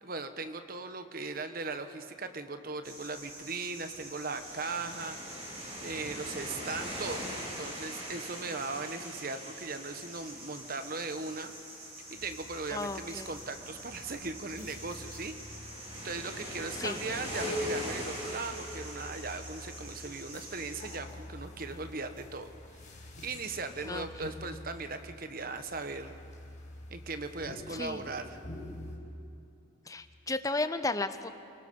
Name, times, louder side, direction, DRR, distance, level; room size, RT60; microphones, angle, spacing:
voice 1, 0.0-5.5 5.8-7.3 7.6-11.5 12.1-15.4 16.0-22.5 23.2-26.1 26.9-28.4, right 3 dB, 45° right, 9 dB, 1.2 m, -38 dB
sound 1, 2.8-21.0, right 1 dB, 30° right, 3.6 m, -43 dB
sound 2, 12.1-29.0, left 1 dB, 40° left, 5.3 m, -45 dB
voice 2, 12.7-13.3 16.8-17.0 23.9-24.1 27.7-28.0 29.9-31.3, left 2 dB, 15° left, 11 dB, 0.7 m, -34 dB
30.0 x 19.0 x 5.5 m, 2.7 s
head